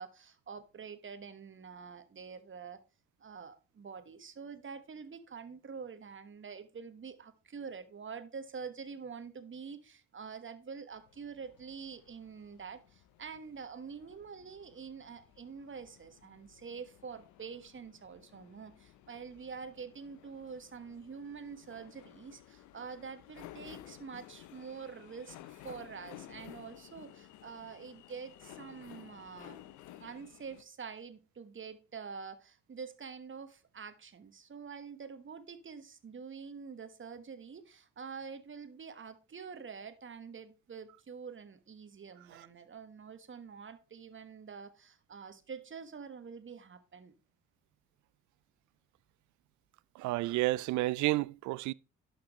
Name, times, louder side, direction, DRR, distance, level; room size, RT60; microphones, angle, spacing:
voice 1, 0.0-2.8 3.2-29.6 30.0-47.1, right 6 dB, 40° right, 1.4 m, -46 dB
sound 1, 10.9-30.6, left 13 dB, 80° left, 0.8 m, -55 dB
voice 2, 50.0-51.7, right 18 dB, 75° right, 0.5 m, -31 dB
11.5 x 6.0 x 3.1 m
supercardioid pair, 60°, 30 cm